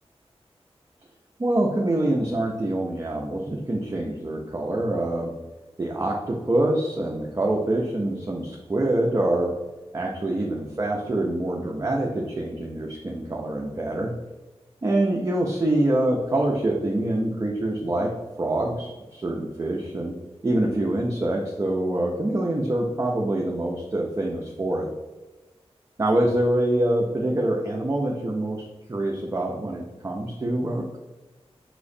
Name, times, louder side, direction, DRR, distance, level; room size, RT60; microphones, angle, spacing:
voice 1, 1.4-5.3 5.8-9.5 9.9-14.1 14.8-18.1 18.4-20.1 20.4-24.9 26.0-31.0, right 1 dB, 30° right, -1 dB, 0.5 m, -25 dB
5.7 x 3.0 x 2.6 m, 1.1 s
wide cardioid pair, 85°, 11 cm